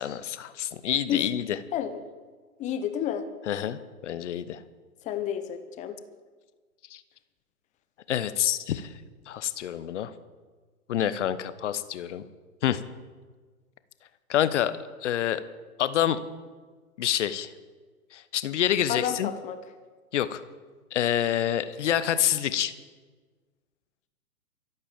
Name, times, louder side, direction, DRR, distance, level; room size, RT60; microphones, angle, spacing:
voice 1, 0.0-1.6 3.5-4.6 6.9-7.0 8.1-8.9 9.3-10.1 10.9-12.2 12.6-12.8 14.3-14.7 15.0-15.4 15.8-16.2 17.0-17.5 18.1-19.3 20.1-20.4 20.9-22.7, left 11 dB, 50° left, 13 dB, 1.1 m, -27 dB
voice 2, 2.6-3.3 5.0-6.0 18.9-19.6, left 10 dB, 15° left, 9 dB, 1.0 m, -30 dB
24.0 x 8.6 x 5.1 m, 1.4 s
hypercardioid pair, 130°, 45 cm